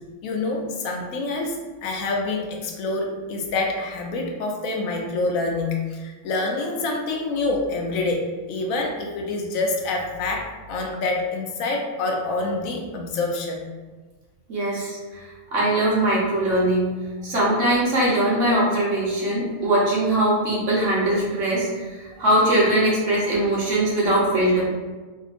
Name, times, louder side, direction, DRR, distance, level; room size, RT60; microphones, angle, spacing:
voice 1, 0.2-13.6, left 2 dB, 80° left, 1 dB, 1.0 m, -26 dB
voice 2, 14.5-15.2 15.5-16.9 17.2-24.6, right 1 dB, 65° right, -5 dB, 1.3 m, -21 dB
3.6 x 2.7 x 2.5 m, 1.3 s
omnidirectional pair, 1.4 m